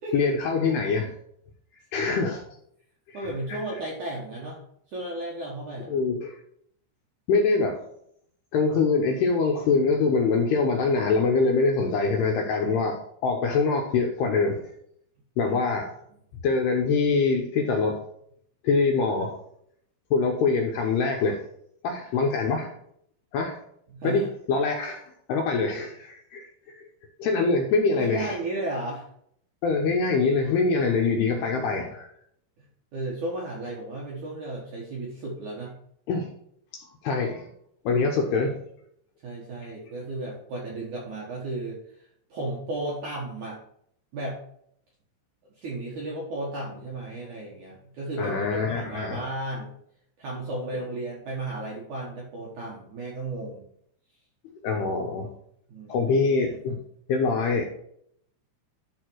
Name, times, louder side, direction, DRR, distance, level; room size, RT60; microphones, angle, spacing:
voice 1, 0.1-1.1 1.9-2.4 3.5-3.6 5.9-6.4 7.3-7.8 8.5-14.6 15.4-15.9 16.4-18.0 18.6-19.3 20.1-21.4 21.8-22.7 23.3-23.6 24.0-26.8 27.2-28.4 29.6-32.1 36.1-36.3 37.0-37.5 37.9-38.6 48.2-49.2 54.6-55.3 55.9-56.8 57.1-57.6, left 4 dB, 75° left, 2 dB, 2.5 m, -24 dB
voice 2, 2.0-2.4 3.1-4.6 4.9-5.9 15.4-15.6 23.9-24.3 27.5-27.6 28.0-29.1 32.6-32.7 32.9-35.7 39.2-42.1 42.3-43.6 44.1-44.4 45.6-48.4 48.7-49.7 50.2-53.7 55.7-56.1, right 2 dB, 65° right, -3 dB, 1.9 m, -34 dB
12.0 x 4.3 x 4.6 m, 0.69 s
omnidirectional pair, 5.6 m